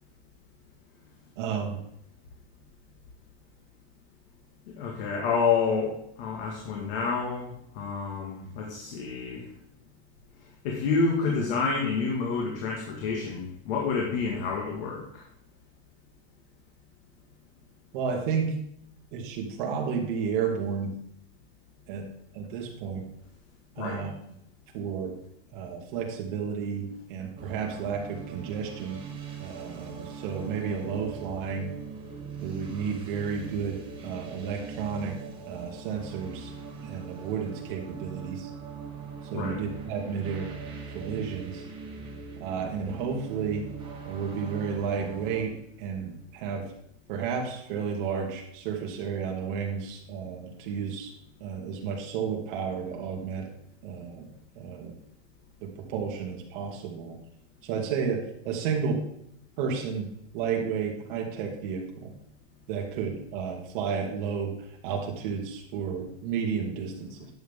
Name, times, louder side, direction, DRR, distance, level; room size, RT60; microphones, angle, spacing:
voice 1, 1.4-1.8 17.9-18.5 19.1-21.0 21.9-22.1 22.3-23.1 23.8-24.1 24.7-25.1 25.5-29.0 29.4-31.7 32.4-35.2 35.5-36.5 36.8-38.5 39.3-40.5 40.9-41.6 42.4-43.7 44.1-46.7 47.1-51.1 51.4-53.5 53.8-54.3 54.5-54.9 55.6-57.2 57.6-59.0 59.6-60.1 60.3-62.1 62.7-67.2, right 6 dB, 50° right, 0 dB, 2.5 m, -32 dB
voice 2, 4.8-9.4 10.6-15.2 23.8-24.1 39.3-39.6, left 5 dB, 60° left, 0 dB, 2.0 m, -29 dB
sound 1, 27.4-45.4, right 5 dB, 15° right, 2.0 m, -41 dB
10.5 x 7.9 x 3.7 m, 0.73 s
supercardioid pair, 165°, 33 cm